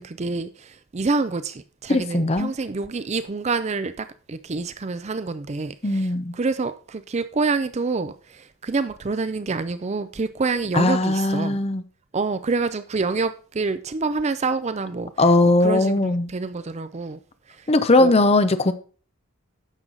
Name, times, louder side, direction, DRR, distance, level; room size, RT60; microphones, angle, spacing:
voice 1, 0.0-6.1 6.3-11.6 12.1-15.1 15.6-17.2 18.0-18.1, right 4 dB, 30° right, 0.5 m, -27 dB
voice 2, 1.9-2.5 5.8-6.3 10.7-11.8 15.2-16.3 17.7-18.7, left 2 dB, 30° left, 0.7 m, -19 dB
9.9 x 6.6 x 3.8 m
head